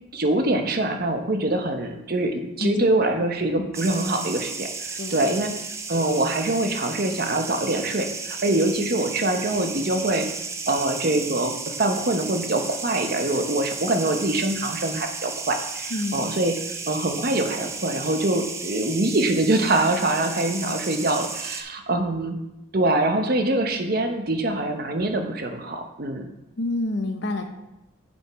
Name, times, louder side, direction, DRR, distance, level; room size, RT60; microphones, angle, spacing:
voice 1, 0.1-5.5 5.9-10.3 10.7-16.5 16.9-22.4 22.7-26.3, right 2 dB, 50° right, 5 dB, 0.9 m, -24 dB
sound 1, 3.7-21.6, right 4 dB, 15° right, 0.5 m, -34 dB
voice 2, 15.9-16.3 26.6-27.5, left 2 dB, 60° left, 6 dB, 0.8 m, -28 dB
8.0 x 5.4 x 4.6 m, 0.91 s
head